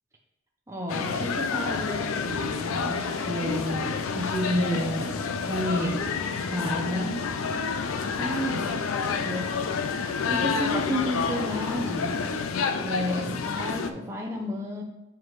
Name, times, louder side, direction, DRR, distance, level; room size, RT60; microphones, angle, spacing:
voice 1, 0.7-5.2 5.5-6.2 6.5-7.3 8.2-9.6 10.3-12.2 12.7-14.8, equal, 15° right, -1 dB, 0.6 m, -31 dB
sound 1, 0.9-13.9, left 5 dB, 75° left, 0.4 m, -29 dB
7.6 x 4.7 x 3.1 m, 0.97 s
head